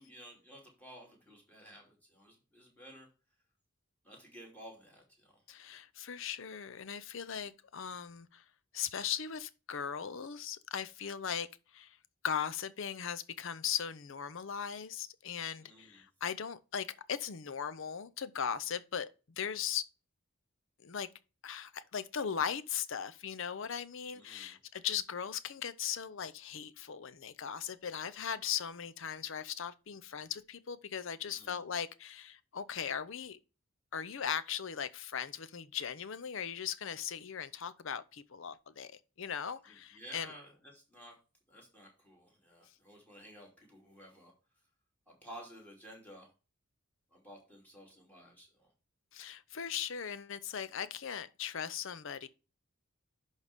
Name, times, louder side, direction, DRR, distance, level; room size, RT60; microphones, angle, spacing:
voice 1, 0.0-3.1 4.0-5.4 15.6-16.1 24.1-24.6 31.2-31.6 39.6-41.2 41.5-44.3 45.1-46.3 47.1-48.7, equal, 10° left, 2.8 m, -54 dB
voice 2, 5.5-8.4 8.7-11.5 11.7-12.0 12.2-19.9 20.8-21.1 21.4-33.4 33.9-38.9 39.2-40.3 49.1-52.3, left 8 dB, 60° left, 0.6 m, -38 dB
11.0 x 4.1 x 3.5 m
head